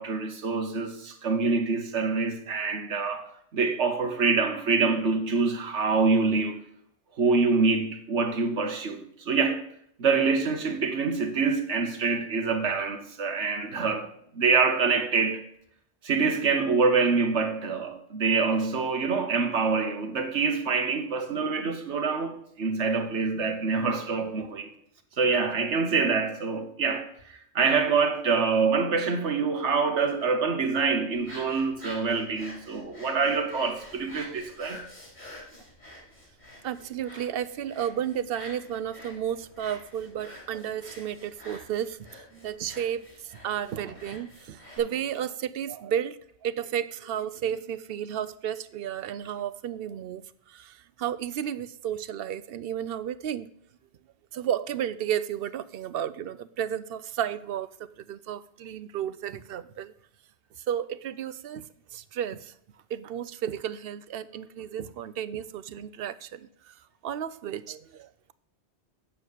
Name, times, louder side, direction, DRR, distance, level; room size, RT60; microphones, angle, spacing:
voice 1, 0.0-3.2 3.5-6.6 7.2-9.6 10.0-14.1 14.3-15.4 16.0-24.7 25.2-34.8, right 4 dB, 85° right, 1.5 m, -25 dB
sound 1, 31.1-44.8, left 1 dB, 40° left, 3.9 m, -47 dB
voice 2, 36.6-53.5 54.3-59.9 60.6-62.5 62.9-68.3, right 9 dB, 65° right, 0.7 m, -33 dB
8.9 x 7.0 x 6.5 m
omnidirectional pair, 1.1 m